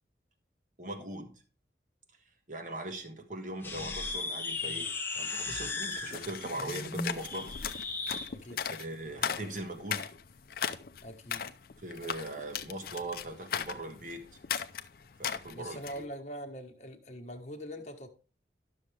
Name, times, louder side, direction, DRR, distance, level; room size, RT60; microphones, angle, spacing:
voice 1, 0.8-1.3 2.5-4.9 5.2-7.5 8.5-10.1 11.8-14.2 15.2-16.0, right 1 dB, 45° right, 1.4 m, -40 dB
sound 1, 3.6-8.3, left 3 dB, 10° left, 0.9 m, -36 dB
sound 2, 5.8-16.0, left 8 dB, 55° left, 0.5 m, -38 dB
voice 2, 8.3-8.8 11.0-11.4 15.5-18.1, equal, 40° left, 1.2 m, -43 dB
11.5 x 6.5 x 3.3 m
head